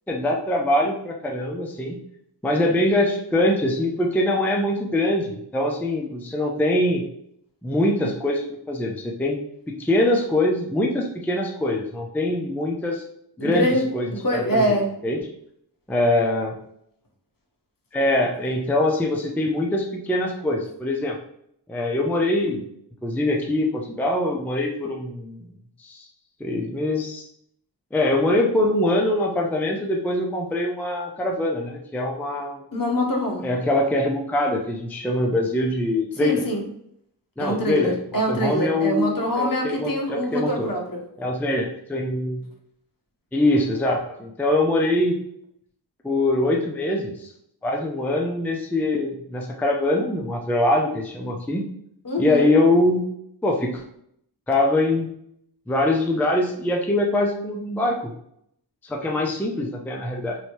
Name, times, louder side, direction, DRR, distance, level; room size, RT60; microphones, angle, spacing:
voice 1, 0.1-2.0 2.4-7.0 7.6-9.4 9.8-13.0 13.4-13.7 13.9-14.8 15.0-15.2 15.9-16.6 17.9-21.2 21.7-22.7 23.0-25.5 25.8-26.1 26.4-27.2 27.9-32.6 33.4-36.5 37.4-40.7 41.2-42.4 43.3-45.2 46.0-47.3 47.6-51.7 52.2-53.1 53.4-53.8 54.5-55.1 55.7-58.1 58.8-60.4, left 1 dB, 5° left, 0 dB, 0.4 m, -23 dB
voice 2, 13.4-13.8 14.1-14.9 32.7-33.5 36.2-36.7 37.4-41.0 52.0-52.5, equal, 55° left, 0 dB, 1.0 m, -24 dB
3.1 x 2.7 x 4.4 m, 0.72 s
wide cardioid pair, 105°, 41 cm